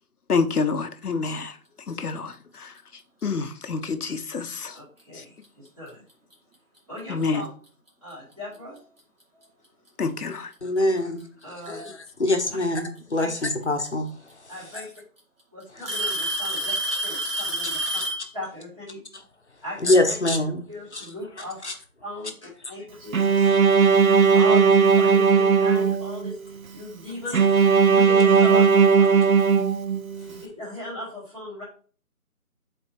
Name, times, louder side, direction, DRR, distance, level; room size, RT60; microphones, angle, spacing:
voice 1, 0.3-1.5 1.9-2.7 3.2-4.7 7.1-7.4 10.0-10.5 11.7-11.8, left 4 dB, 85° left, 0.9 m, -27 dB
Alarm / Tick-tock, 4.3-4.6 5.4-5.5 6.3-6.4 8.1-8.2 9.4-9.5 10.8-11.2 13.0-13.1 14.3-14.4 14.7-15.2 15.9-18.3, right 1 dB, 40° right, 1.9 m, -28 dB
voice 2, 4.7-6.0 6.9-7.5 8.0-8.8 9.3-9.5 11.4-11.8 13.2-13.3 14.5-14.9 15.5-17.8 18.3-19.0 19.6-20.1 20.7-21.6 22.0-22.3 22.7-23.6 24.2-27.5 27.9-29.3 30.3-31.6, left 1 dB, 20° right, 2.2 m, -38 dB
voice 3, 10.6-11.2 11.5-14.5 17.8-17.9 19.1-19.2 19.8-20.6 20.9-21.1 21.6-21.7, left 1 dB, 50° left, 1.0 m, -24 dB
Bowed string instrument, 23.1-26.3 27.3-30.3, right 5 dB, 70° right, 0.7 m, -17 dB
9.3 x 4.2 x 3.1 m
figure-of-eight pair, 175°, 44 cm